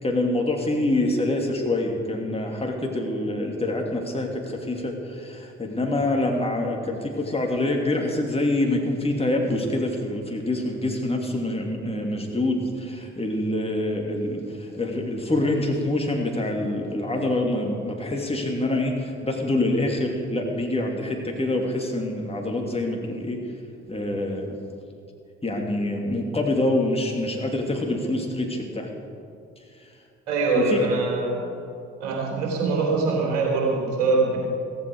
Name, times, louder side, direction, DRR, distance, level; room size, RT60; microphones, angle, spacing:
voice 1, 0.0-23.4 23.9-24.6 25.4-28.9 30.5-30.9, left 1 dB, 15° left, 1 dB, 2.9 m, -26 dB
voice 2, 30.3-31.5 32.0-34.4, right 3 dB, 70° right, -1 dB, 3.8 m, -23 dB
15.5 x 15.5 x 4.9 m, 2.5 s
figure-of-eight pair, 45°, 34 cm